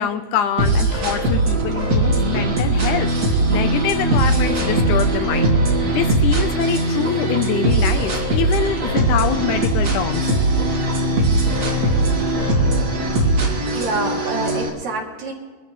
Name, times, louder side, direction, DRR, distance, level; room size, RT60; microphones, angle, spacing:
voice 1, 0.0-10.3, left 9 dB, 75° left, 9 dB, 2.1 m, -25 dB
sound 1, 0.6-14.7, right 2 dB, 35° right, 2.0 m, -19 dB
voice 2, 13.7-15.3, right 3 dB, 60° right, -2 dB, 3.9 m, -26 dB
23.0 x 13.5 x 3.2 m, 1.4 s
omnidirectional pair, 3.8 m